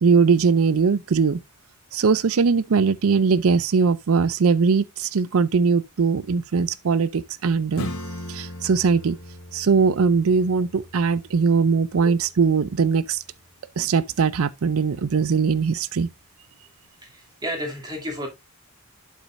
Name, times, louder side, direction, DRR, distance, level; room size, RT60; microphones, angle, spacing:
voice 1, 0.0-1.4 1.9-7.9 8.3-9.2 9.5-13.2 13.8-16.1, right 5 dB, 75° right, 0.5 m, -20 dB
Acoustic guitar / Strum, 7.7-13.0, left 1 dB, 80° left, 1.8 m, -38 dB
voice 2, 17.0-18.3, equal, 20° right, 2.6 m, -32 dB
8.5 x 7.3 x 2.5 m
head